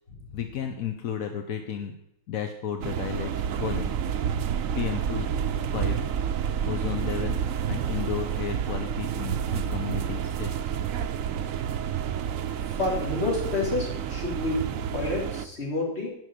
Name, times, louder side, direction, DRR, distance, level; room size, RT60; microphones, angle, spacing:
voice 1, 0.3-2.0 2.3-3.3 3.6-3.9 4.8-5.3 5.7-6.0 6.6-10.8, left 8 dB, 85° left, 6 dB, 1.3 m, -33 dB
sound 1, 2.8-15.5, right 8 dB, 75° right, 1.1 m, -29 dB
voice 2, 12.6-16.1, left 2 dB, 50° left, -3 dB, 3.8 m, -29 dB
11.0 x 6.2 x 9.1 m, 0.81 s
omnidirectional pair, 1.4 m